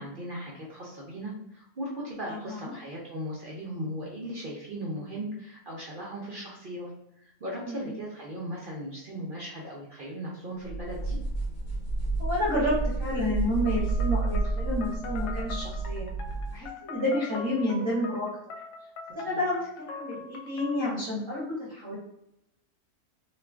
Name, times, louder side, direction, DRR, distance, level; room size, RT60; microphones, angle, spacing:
voice 1, 0.0-6.9 7.2-11.2 19.2-19.4, equal, 55° right, -4 dB, 0.5 m, -37 dB
voice 2, 2.3-2.7 7.6-7.8 12.2-16.1 16.5-18.3 19.1-21.9, left 1 dB, 25° right, -8 dB, 0.8 m, -30 dB
sound 1, 10.7-16.7, right 3 dB, 65° left, 1.1 m, -30 dB
sound 2, 13.7-21.0, left 4 dB, 85° left, 1.1 m, -42 dB
2.4 x 2.4 x 3.3 m, 0.83 s
omnidirectional pair, 1.6 m